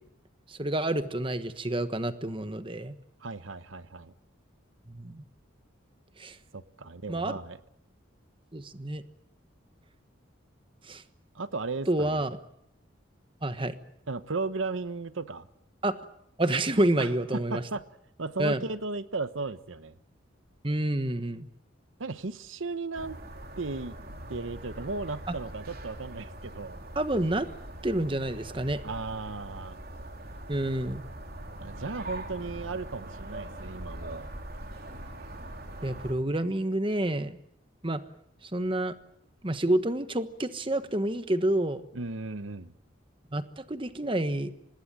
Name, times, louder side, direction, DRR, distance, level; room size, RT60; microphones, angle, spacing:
voice 1, 0.5-2.9 4.9-5.2 6.2-6.4 7.1-7.4 8.5-9.0 10.8-11.0 11.9-12.4 13.4-13.7 15.8-15.9 16.4-17.6 18.4-18.6 20.6-21.5 26.9-27.5 27.8-28.8 30.5-31.0 35.8-37.4 37.8-38.0 38.4-39.0 39.4-41.8 43.3-44.5, right 1 dB, 25° right, 10 dB, 1.3 m, -28 dB
voice 2, 3.2-4.1 6.5-7.6 11.3-12.2 14.1-15.5 17.0-17.8 18.2-20.0 22.0-23.2 23.6-24.0 24.3-26.8 28.8-29.8 31.6-34.3 41.9-42.7, right 3 dB, 80° right, 13 dB, 1.1 m, -35 dB
sound 1, 22.9-36.1, right 1 dB, 50° right, 3.7 m, -42 dB
25.5 x 20.0 x 8.9 m, 0.76 s
head